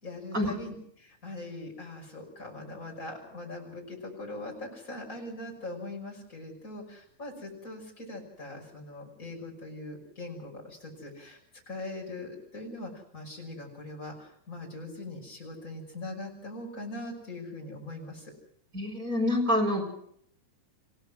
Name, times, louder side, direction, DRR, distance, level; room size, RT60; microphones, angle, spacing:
voice 1, 0.0-11.4 11.7-18.3, left 2 dB, 20° left, 1 dB, 5.9 m, -41 dB
voice 2, 18.7-19.8, left 1 dB, 20° right, 1 dB, 5.2 m, -26 dB
27.5 x 17.0 x 6.2 m, 0.69 s
omnidirectional pair, 4.5 m